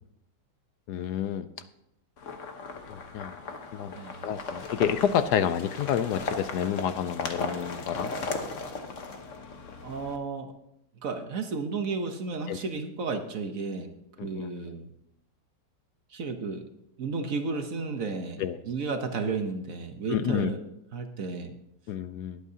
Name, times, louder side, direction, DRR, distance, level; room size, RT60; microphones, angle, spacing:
voice 1, 0.9-1.5 2.9-3.3 3.7-4.0 4.2-8.1 12.5-12.6 14.2-14.5 18.4-18.6 20.1-20.5 21.9-22.4, left 9 dB, 75° left, 12 dB, 1.1 m, -29 dB
sound 1, 2.2-10.2, left 4 dB, 50° left, 1.3 m, -37 dB
voice 2, 9.8-10.5 11.0-13.9 14.2-14.9 16.1-16.6 17.0-20.6 20.9-21.5, right 4 dB, 55° right, 6 dB, 1.2 m, -33 dB
20.5 x 8.3 x 2.8 m, 0.81 s
omnidirectional pair, 1.9 m